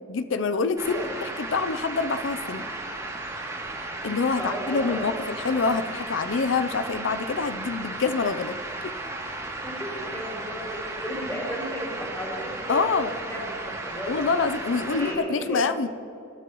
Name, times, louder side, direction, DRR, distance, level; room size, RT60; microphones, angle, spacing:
voice 1, 0.1-2.6 4.0-8.6 8.8-8.9 12.7-13.1 14.1-15.9, left 4 dB, 65° left, 11 dB, 0.5 m, -26 dB
sound 1, 0.8-15.1, right 2 dB, 15° right, 2.7 m, -35 dB
voice 2, 4.4-5.0 5.5-5.8 9.6-14.2 14.9-15.7, equal, 15° left, -5 dB, 3.9 m, -34 dB
27.0 x 13.0 x 3.1 m, 2.6 s
head